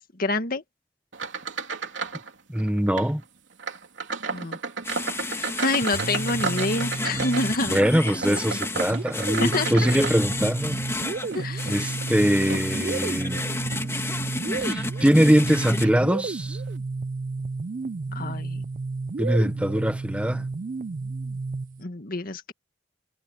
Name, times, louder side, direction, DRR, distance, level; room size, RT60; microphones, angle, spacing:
voice 1, 0.2-0.6 4.3-4.6 5.3-7.8 8.3-8.6 9.4-9.7 11.3-11.8 18.1-18.6 21.8-22.5, left 2 dB, 50° left, 1.9 m, -27 dB
sound 1, 1.1-2.3 2.6-3.1 3.6-10.7 11.2-13.0 13.6-13.9 14.4-14.6 15.4-15.5 15.8-16.0, right 4 dB, 90° right, 3.1 m, -33 dB
voice 2, 2.5-3.2 7.7-10.8 11.7-13.4 14.5-16.6 19.2-20.5, equal, 5° right, 0.9 m, -22 dB
sound 2, 4.8-15.8, left 2 dB, 15° left, 2.5 m, -32 dB
sound 3, 5.8-7.9 8.9-21.8, right 3 dB, 45° right, 0.4 m, -32 dB
head